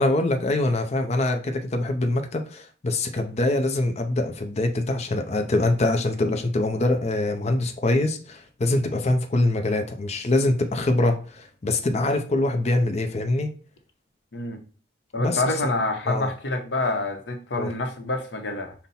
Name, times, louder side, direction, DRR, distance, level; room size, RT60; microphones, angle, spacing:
voice 1, 0.0-13.5 15.2-15.7 16.1-16.3 17.6-17.7, left 2 dB, 35° left, 0.5 m, -24 dB
voice 2, 15.1-18.7, left 2 dB, 65° left, 0.8 m, -27 dB
5.4 x 2.1 x 4.1 m
head